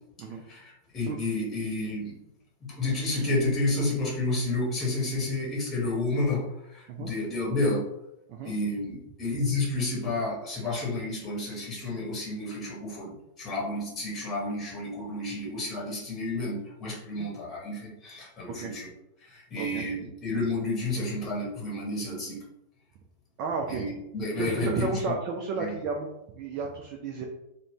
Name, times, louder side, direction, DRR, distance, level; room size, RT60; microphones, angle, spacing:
voice 1, 0.2-2.2 2.7-7.9 8.4-18.9 19.2-22.4 23.7-25.1 25.6-25.7, left 2 dB, 25° left, -4 dB, 0.9 m, -30 dB
voice 2, 23.4-23.8 24.4-26.1 26.4-27.3, right 4 dB, 40° right, 1 dB, 0.3 m, -32 dB
2.4 x 2.1 x 3.4 m, 0.86 s
figure-of-eight pair, 90°, 0 cm